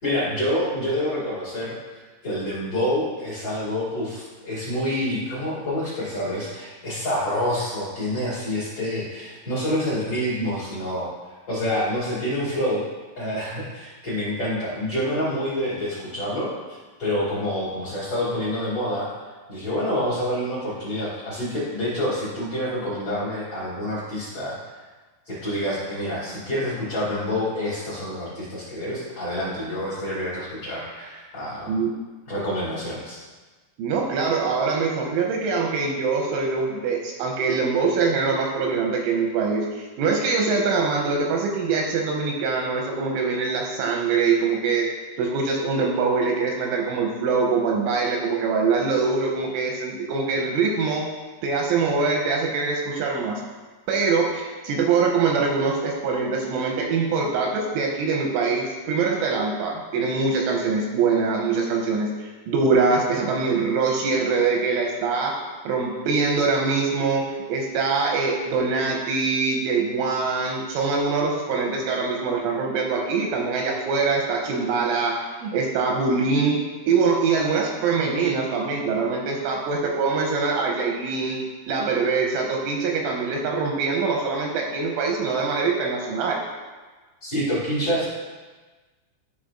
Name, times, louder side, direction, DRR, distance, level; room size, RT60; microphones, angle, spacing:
voice 1, 0.0-1.8 2.2-11.1 11.5-12.8 13.2-19.1 19.5-24.8 25.3-31.7 32.3-33.2 87.2-88.1, equal, 40° left, -10 dB, 2.3 m, -27 dB
voice 2, 33.8-44.9 45.2-51.1 51.4-53.4 53.9-65.4 65.6-76.6 76.9-81.4 81.7-86.4, right 4 dB, 85° right, 0 dB, 3.0 m, -23 dB
12.5 x 5.6 x 2.5 m, 1.3 s
omnidirectional pair, 6.0 m